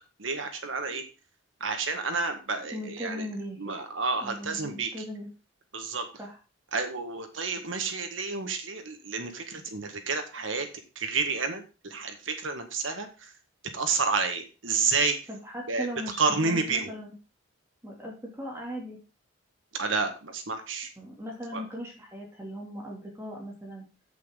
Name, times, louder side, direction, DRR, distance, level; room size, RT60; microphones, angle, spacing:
voice 1, 0.2-1.0 1.6-3.3 3.6-4.9 5.7-6.1 6.7-10.7 11.0-13.3 13.7-15.2 15.7-15.9 16.2-16.9 19.8-20.9 21.5-21.6, right 4 dB, 75° right, 6 dB, 1.6 m, -30 dB
voice 2, 2.5-3.8 4.2-5.3 6.2-6.4 15.3-17.1 17.8-19.0 21.0-23.8, equal, 15° right, -2 dB, 2.6 m, -38 dB
10.0 x 8.2 x 3.8 m, 0.31 s
head